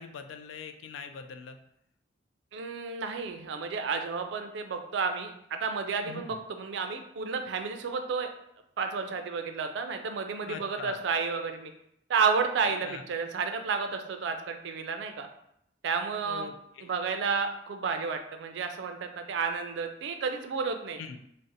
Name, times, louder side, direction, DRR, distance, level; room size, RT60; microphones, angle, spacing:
voice 1, 0.0-1.6 6.0-6.4 10.4-11.0 12.8-13.0 16.2-16.9 21.0-21.2, left 6 dB, 80° left, 8 dB, 0.3 m, -42 dB
voice 2, 2.5-8.3 8.8-11.7 12.1-15.3 15.8-16.5 16.8-21.0, right 5 dB, 65° right, 6 dB, 0.4 m, -31 dB
2.5 x 2.0 x 3.9 m, 0.76 s
head